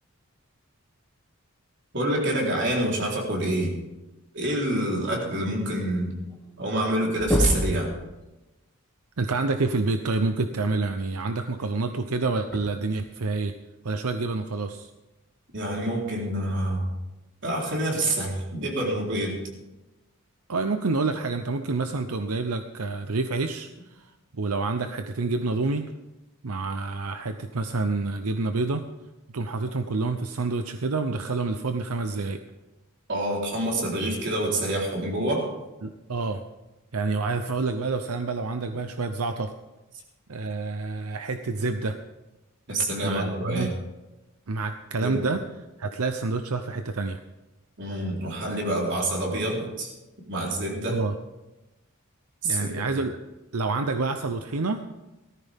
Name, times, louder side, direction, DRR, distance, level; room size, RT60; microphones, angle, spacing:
voice 1, 1.9-3.7 4.3-6.2 6.6-7.9 15.5-16.8 17.4-19.4 33.1-35.5 42.7-43.7 45.0-45.2 47.8-49.9 50.3-51.0 52.4-52.8, right 1 dB, 55° right, -2 dB, 3.9 m, -27 dB
sound 1, 6.3-6.4 6.6-6.9 7.2-7.8 9.6-9.7 11.5-11.6 12.5-12.6, equal, 5° left, 2.1 m, -24 dB
voice 2, 9.2-13.5 13.8-14.9 20.5-25.9 26.4-28.8 29.3-32.4 35.8-36.4 36.9-39.5 40.3-42.0 43.0-43.7 44.5-45.4 45.8-47.2 50.9-51.1 52.4-53.1 53.5-54.8, right 3 dB, 90° right, 8 dB, 0.8 m, -28 dB
18.0 x 14.0 x 3.6 m, 1.1 s
head